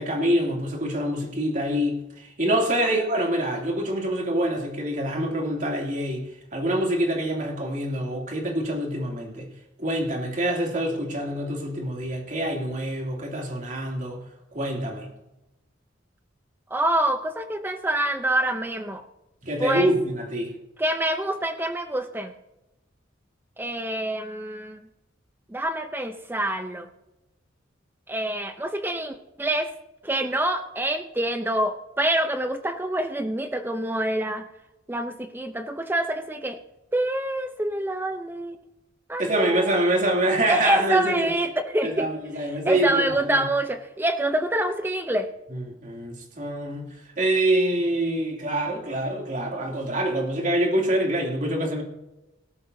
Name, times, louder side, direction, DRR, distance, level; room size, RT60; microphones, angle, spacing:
voice 1, 0.0-6.2 6.5-9.5 9.8-14.2 14.5-15.1 19.4-20.5 39.2-41.3 41.8-43.4 45.5-46.9 47.2-51.8, right 1 dB, 45° right, 2.8 m, -25 dB
voice 2, 16.7-19.0 19.6-19.9 20.8-22.3 23.6-24.9 25.5-26.9 28.1-29.7 30.0-34.4 34.9-36.6 36.9-38.6 39.1-39.8 40.5-42.1 42.6-45.3, right 1 dB, 10° right, 0.6 m, -26 dB
17.5 x 13.0 x 2.7 m
head